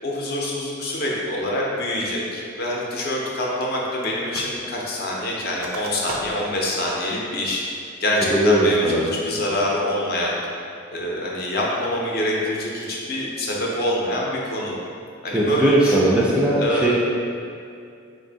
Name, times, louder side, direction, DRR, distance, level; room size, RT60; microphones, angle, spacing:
voice 1, 0.0-7.6 8.0-8.8 9.2-10.4 10.9-14.8 15.2-16.2 16.6-16.9, left 1 dB, 50° left, -3 dB, 0.6 m, -25 dB
sound 1, 4.0-4.6 4.9-6.6 7.0-7.1 7.6-8.0 8.5-8.9, right 3 dB, 85° right, 0.4 m, -37 dB
voice 2, 8.3-9.1 15.3-16.9, right 1 dB, 5° right, -6 dB, 0.3 m, -19 dB
3.4 x 2.6 x 3.8 m, 2.4 s
head